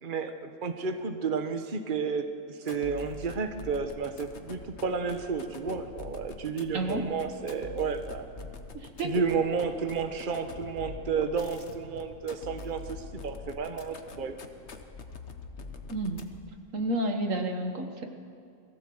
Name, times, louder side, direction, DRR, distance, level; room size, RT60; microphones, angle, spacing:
voice 1, 0.0-8.3 9.0-14.3, right 5 dB, 40° right, 7 dB, 1.3 m, -32 dB
sound 1, 2.6-16.6, left 4 dB, 60° left, 1.5 m, -44 dB
voice 2, 6.7-7.0 8.7-9.1 15.9-16.2 16.7-18.1, right 1 dB, 80° right, 5 dB, 1.9 m, -30 dB
22.5 x 15.5 x 7.8 m, 2.4 s
omnidirectional pair, 1.3 m